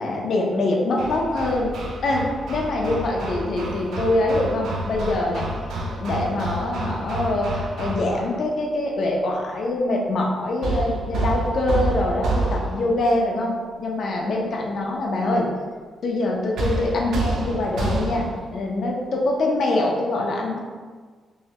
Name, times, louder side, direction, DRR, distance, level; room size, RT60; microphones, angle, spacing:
voice 1, 0.0-5.5 6.0-15.4 16.0-20.6, left 2 dB, 55° left, -1 dB, 0.5 m, -24 dB
Hammer, 1.0-8.4 10.6-13.0 16.6-18.5, right 2 dB, 75° right, 0.4 m, -28 dB
3.1 x 2.7 x 2.8 m, 1.5 s
wide cardioid pair, 150°, 0 cm